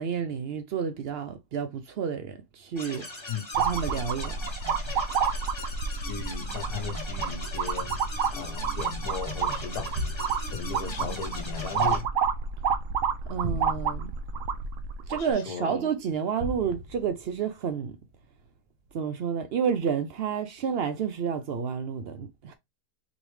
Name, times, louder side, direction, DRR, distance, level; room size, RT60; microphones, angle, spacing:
voice 1, 0.0-4.4 13.3-14.1 15.1-18.0 18.9-22.5, right 7 dB, 90° right, 0.5 m, -30 dB
sound 1, 2.8-12.0, left 2 dB, 15° left, 1.3 m, -40 dB
sound 2, 3.5-15.3, right 6 dB, 65° right, 0.9 m, -29 dB
voice 2, 5.9-7.9 8.3-9.9 10.5-12.1 15.1-15.8, left 7 dB, 70° left, 1.1 m, -37 dB
sound 3, 7.8-12.8 13.3-15.7 16.3-18.4 18.9-19.0, equal, 30° right, 0.8 m, -41 dB
4.2 x 3.4 x 3.0 m
omnidirectional pair, 1.8 m